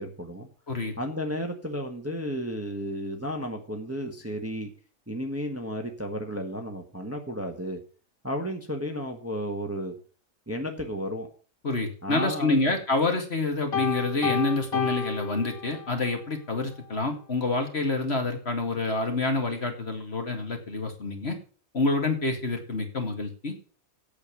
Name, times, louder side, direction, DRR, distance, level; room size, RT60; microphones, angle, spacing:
voice 1, 0.0-0.5 1.0-4.7 5.1-7.8 8.2-9.9 10.5-11.3 12.0-12.6, equal, 10° right, 3 dB, 1.4 m, -33 dB
voice 2, 11.6-21.4 21.7-23.6, left 3 dB, 45° left, 4 dB, 2.4 m, -27 dB
Piano, 13.7-16.1, left 5 dB, 75° left, 2.4 m, -31 dB
8.7 x 7.2 x 8.4 m, 0.40 s
omnidirectional pair, 1.5 m